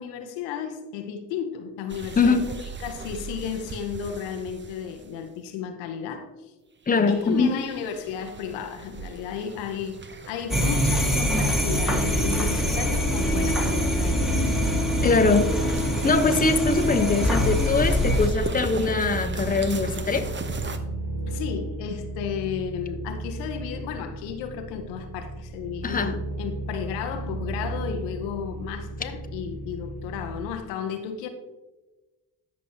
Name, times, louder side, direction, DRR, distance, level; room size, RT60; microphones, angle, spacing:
voice 1, 0.0-2.4 2.8-6.5 7.1-14.3 21.3-31.3, left 7 dB, 80° left, 0.8 m, -33 dB
sound 1, 1.9-5.2 7.0-20.8, right 5 dB, 25° right, 0.8 m, -38 dB
voice 2, 6.9-7.5 15.0-15.5 16.0-20.3 25.8-26.1, left 4 dB, 20° left, 0.9 m, -22 dB
sound 2, 10.5-18.3, equal, ahead, 1.6 m, -24 dB
sound 3, 10.7-30.5, right 2 dB, 65° right, 1.6 m, -33 dB
13.0 x 5.3 x 2.9 m
hypercardioid pair, 50°, 44 cm